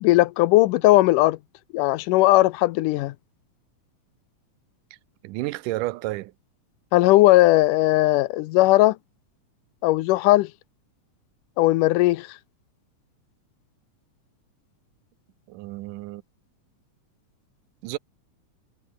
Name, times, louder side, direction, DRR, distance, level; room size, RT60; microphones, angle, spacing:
voice 1, 0.0-1.4 1.7-3.1 6.9-9.0 9.8-10.5 11.6-12.3, left 18 dB, 85° left, 2.2 m, -18 dB
voice 2, 5.2-6.3 15.5-16.2 17.8-18.0, right 18 dB, 85° right, 2.2 m, -31 dB
omnidirectional pair, 3.7 m